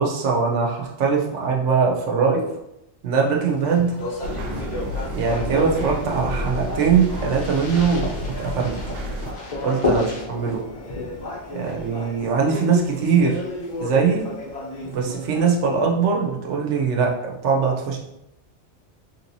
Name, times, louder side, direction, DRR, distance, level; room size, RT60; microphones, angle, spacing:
voice 1, 0.0-2.4 3.0-4.0 5.1-8.8 9.6-10.6 11.5-13.4 13.8-14.3 14.8-18.0, right 5 dB, 90° right, 0 dB, 1.0 m, -21 dB
Speech, 3.4-15.8, left 2 dB, 85° left, 1.1 m, -35 dB
sound 1, 4.2-9.3, equal, 65° right, 0.8 m, -30 dB
sound 2, 8.0-12.9, left 4 dB, 40° left, 0.6 m, -31 dB
3.2 x 2.9 x 2.6 m, 0.85 s
omnidirectional pair, 1.2 m